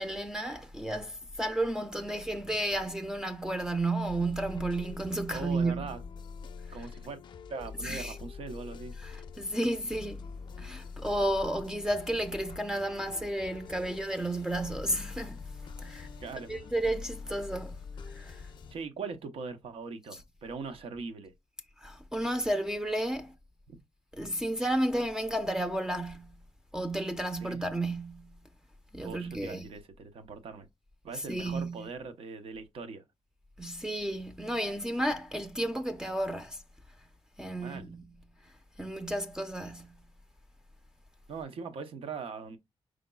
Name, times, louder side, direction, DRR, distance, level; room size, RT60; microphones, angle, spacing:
voice 1, 0.0-6.0 6.8-6.9 7.8-8.2 9.0-10.2 10.6-15.4 15.8-16.1 16.5-17.8 18.1-18.4 21.8-23.3 24.1-26.3 26.7-28.3 28.9-29.7 31.1-31.9 33.6-36.6 37.4-38.0 38.8-39.9, right 1 dB, 5° right, 0.5 m, -32 dB
sound 1, 4.0-18.8, left 5 dB, 50° left, 0.5 m, -45 dB
voice 2, 5.3-6.0 6.7-7.2 7.5-8.9 16.2-16.5 18.7-21.3 23.7-23.8 27.4-27.6 29.0-30.7 31.0-33.0 37.6-37.9 41.3-42.6, right 4 dB, 75° right, 0.8 m, -41 dB
4.9 x 4.0 x 2.3 m
cardioid pair, 115°, 10 cm